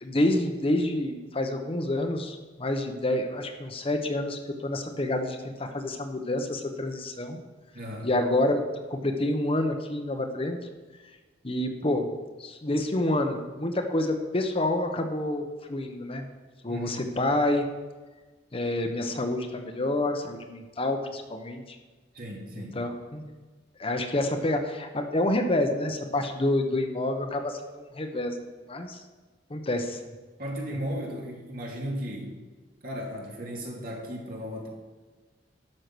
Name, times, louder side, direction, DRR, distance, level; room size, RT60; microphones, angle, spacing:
voice 1, 0.0-7.4 8.0-8.6 8.9-10.6 11.4-12.1 12.4-16.3 16.6-17.7 18.5-21.8 22.7-23.2 23.8-28.3 28.7-29.0 29.5-30.0 30.7-30.8, left 1 dB, 30° left, 5 dB, 0.9 m, -28 dB
voice 2, 7.7-8.1 16.7-16.9 22.1-22.8 30.4-32.3 32.8-34.7, equal, 55° right, -1 dB, 2.6 m, -35 dB
12.0 x 6.5 x 6.1 m, 1.3 s
head